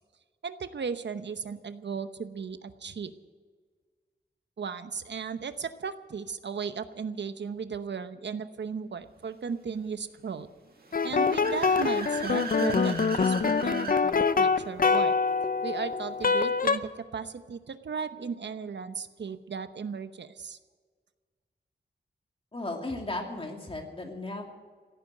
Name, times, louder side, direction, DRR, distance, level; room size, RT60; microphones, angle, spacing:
voice 1, 0.4-3.1 4.6-10.5 11.0-15.2 15.6-20.6, right 6 dB, 80° right, 11 dB, 0.9 m, -36 dB
Car / Accelerating revving vroom, 10.8-14.0, right 4 dB, 60° right, 2.0 m, -39 dB
sound 1, 10.9-16.8, left 5 dB, 55° left, 0.6 m, -25 dB
voice 2, 22.5-24.4, left 2 dB, 30° left, 2 dB, 2.7 m, -35 dB
16.0 x 9.4 x 9.3 m, 1.5 s
wide cardioid pair, 115°, 18 cm